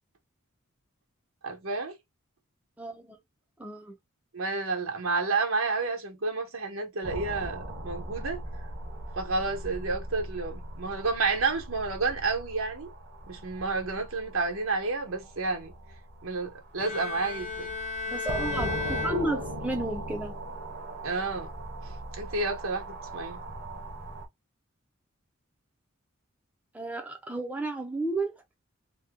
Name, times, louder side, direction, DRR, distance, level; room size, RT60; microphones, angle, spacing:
voice 1, 1.4-2.0 4.3-8.4 9.2-12.9 13.3-15.7 16.2-17.7 21.0-21.5 21.8-21.9 22.2-23.4, right 3 dB, 85° right, 1.1 m, -30 dB
voice 2, 2.8-3.2 3.6-4.0 18.1-20.3 26.7-28.3, right 2 dB, 5° right, 0.5 m, -32 dB
sound 1, 7.0-24.3, right 1 dB, 55° right, 0.9 m, -40 dB
Bowed string instrument, 16.8-19.9, left 4 dB, 35° left, 1.0 m, -35 dB
2.8 x 2.2 x 3.5 m
head